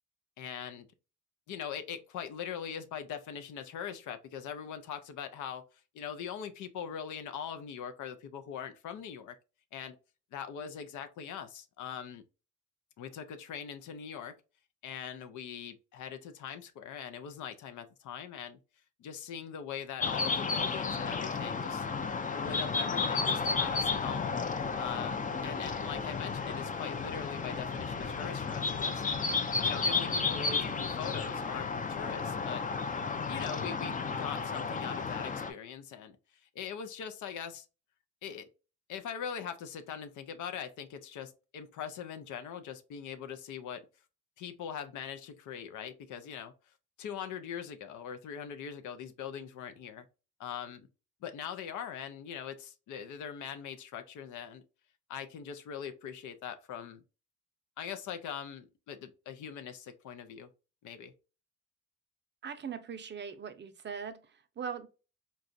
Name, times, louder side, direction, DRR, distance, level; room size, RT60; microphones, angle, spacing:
voice 1, 0.4-0.9 1.5-5.6 5.9-9.4 9.7-10.0 10.3-12.2 13.0-14.4 14.8-18.6 19.0-21.9 22.3-24.3 24.8-29.0 29.6-32.6 33.3-36.2 36.4-37.7 38.2-38.5 38.9-43.9 44.4-46.5 47.0-50.0 50.4-50.9 51.2-54.6 55.1-57.0 57.8-60.5 60.8-61.1, left 8 dB, 80° left, 0.6 m, -41 dB
sound 1, 20.0-35.5, left 4 dB, 25° left, 0.5 m, -33 dB
voice 2, 62.4-64.9, right 7 dB, 35° right, 0.5 m, -40 dB
3.9 x 2.3 x 2.5 m
cardioid pair, 90°, 30 cm